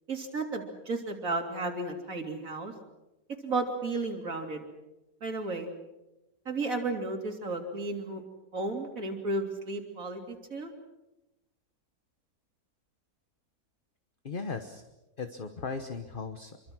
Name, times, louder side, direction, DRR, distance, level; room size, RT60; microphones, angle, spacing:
voice 1, 0.1-2.7 3.4-4.6 5.2-5.7 6.5-8.2 8.5-10.7, right 3 dB, 60° right, 3 dB, 3.6 m, -33 dB
voice 2, 14.2-14.8 15.2-16.6, left 4 dB, 35° left, 8 dB, 1.3 m, -37 dB
26.5 x 24.0 x 6.2 m, 1.0 s
omnidirectional pair, 1.6 m